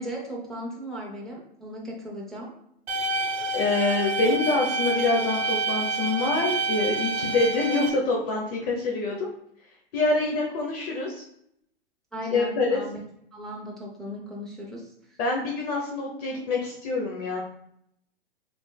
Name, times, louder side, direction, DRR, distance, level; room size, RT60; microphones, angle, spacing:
voice 1, 0.0-2.5 10.3-10.4 12.1-13.0 13.3-15.2, equal, ahead, -4 dB, 0.4 m, -37 dB
sound 1, 2.9-7.9, right 2 dB, 75° right, 0.7 m, -28 dB
voice 2, 3.5-9.3 9.9-11.2 12.3-12.8 15.2-17.4, left 3 dB, 40° left, -2 dB, 0.8 m, -26 dB
3.2 x 3.1 x 2.3 m, 0.72 s
hypercardioid pair, 130°, 30 cm